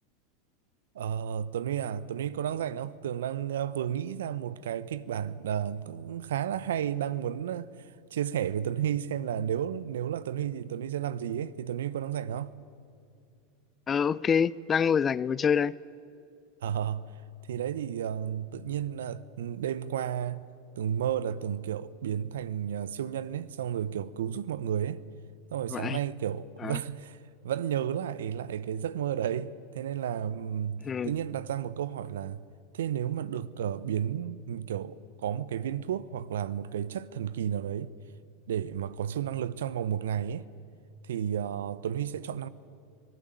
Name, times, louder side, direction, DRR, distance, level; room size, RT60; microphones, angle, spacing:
voice 1, 0.9-12.5 16.6-17.1 17.5-20.5 20.8-25.0 25.5-27.2 27.4-32.5 32.7-37.9 38.5-40.5 41.0-42.5, right 9 dB, 75° right, 0.9 m, -32 dB
voice 2, 13.9-15.8 25.7-26.0 26.6-26.8 30.8-31.1, left 7 dB, 25° left, 0.6 m, -26 dB
26.0 x 19.0 x 9.2 m
hypercardioid pair, 90°, 0 cm